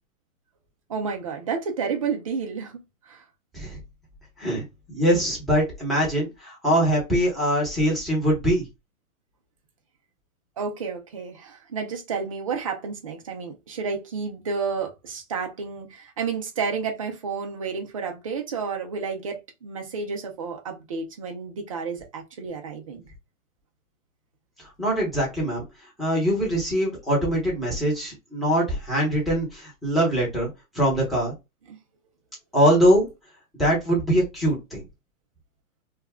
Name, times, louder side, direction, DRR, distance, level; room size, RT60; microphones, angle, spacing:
voice 1, 0.9-2.8 3.1-3.2 10.6-23.0 31.7-31.8, right 5 dB, 25° right, 0.3 m, -31 dB
voice 2, 4.4-8.6 24.8-25.6 26.0-30.5 30.7-31.3 32.5-33.1 33.6-34.8, equal, ahead, 0.9 m, -22 dB
2.4 x 2.0 x 3.4 m
hypercardioid pair, 130°, 44 cm